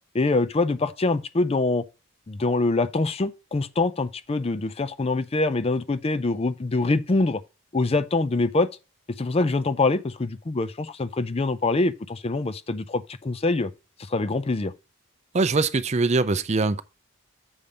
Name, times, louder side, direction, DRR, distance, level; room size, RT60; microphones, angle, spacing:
voice 1, 0.1-1.8 2.3-7.4 7.7-8.7 9.2-13.7 14.1-14.7, left 3 dB, 30° left, 0.4 m, -24 dB
voice 2, 15.3-16.8, right 3 dB, 30° right, 0.5 m, -22 dB
7.1 x 5.1 x 5.3 m
head